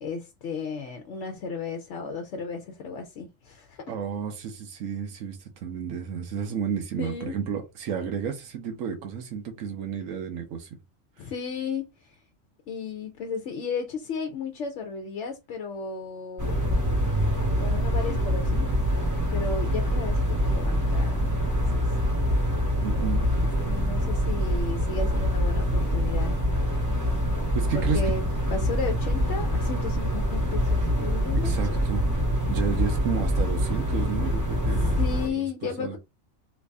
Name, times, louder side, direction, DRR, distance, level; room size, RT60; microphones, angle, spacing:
voice 1, 0.0-3.8 7.0-7.3 11.2-12.1 12.7-16.6 17.6-18.7 19.3-20.2 20.5-21.9 23.7-26.3 27.7-28.2 28.5-31.5 35.0-36.0, left 5 dB, 70° left, 0.9 m, -34 dB
voice 2, 3.9-10.7 11.2-11.3 22.8-23.3 27.5-28.0 31.4-32.1 32.4-35.1 35.4-36.0, right 7 dB, 80° right, 1.2 m, -32 dB
sound 1, 16.4-35.3, equal, 15° right, 0.8 m, -25 dB
3.2 x 2.6 x 3.3 m
omnidirectional pair, 1.4 m